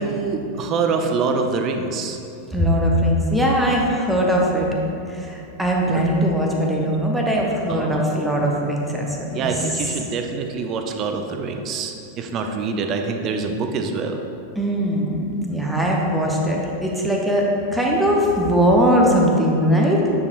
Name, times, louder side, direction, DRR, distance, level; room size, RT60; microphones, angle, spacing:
voice 1, 0.0-2.2 7.7-8.4 9.3-14.2, right 4 dB, 35° right, 4 dB, 0.5 m, -25 dB
voice 2, 2.5-4.7 5.1-9.6 14.6-20.0, equal, 5° right, -1 dB, 0.8 m, -20 dB
9.4 x 4.8 x 2.5 m, 2.7 s
figure-of-eight pair, 90°, 0 cm